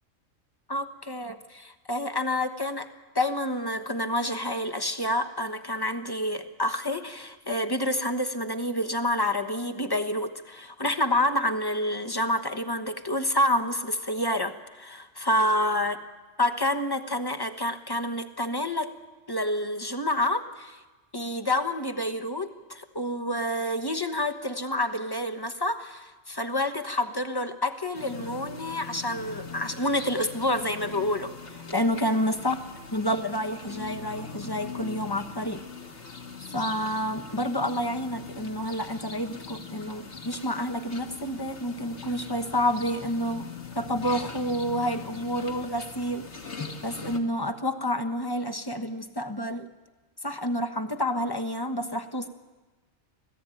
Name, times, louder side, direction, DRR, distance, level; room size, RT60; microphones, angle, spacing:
voice 1, 0.7-2.9 3.1-16.0 16.4-18.9 19.3-20.8 21.1-32.6 32.9-35.6 36.5-43.5 43.7-46.3 46.6-49.7 50.2-52.3, left 1 dB, 20° left, 7 dB, 1.1 m, -28 dB
sound 1, 27.9-47.2, left 5 dB, 60° left, 2.1 m, -41 dB
25.5 x 16.5 x 9.1 m, 1.2 s
omnidirectional pair, 1.3 m